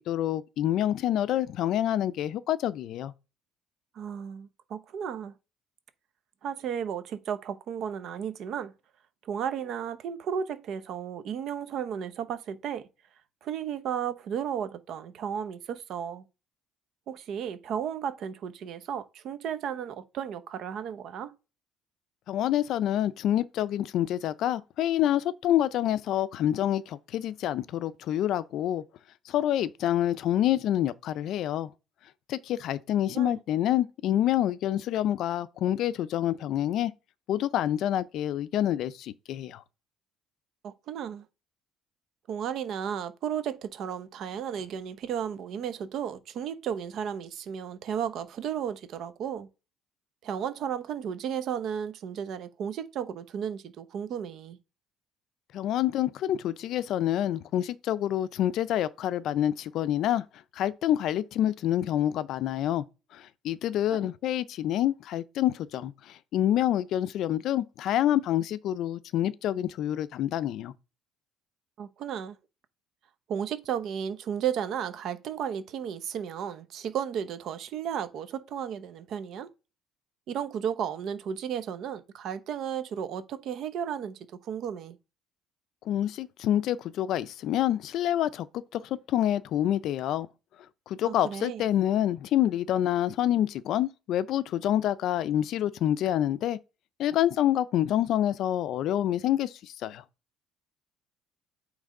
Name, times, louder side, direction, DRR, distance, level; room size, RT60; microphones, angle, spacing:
voice 1, 0.0-3.1 22.3-28.8 29.3-31.7 32.3-36.9 37.3-39.6 55.5-60.2 60.5-62.8 63.1-70.7 85.9-88.5 88.7-90.3 90.9-96.6 97.0-100.0, left 12 dB, 55° left, 0.4 m, -27 dB
voice 2, 3.9-5.3 6.4-8.7 9.2-12.9 13.4-16.3 17.1-21.3 33.1-33.4 40.6-41.2 42.3-49.5 50.2-54.6 64.0-64.1 71.8-72.4 73.3-79.5 80.3-85.0 91.1-91.6, right 8 dB, 50° right, 0.8 m, -34 dB
8.7 x 3.2 x 3.7 m
cardioid pair, 150°, 0 cm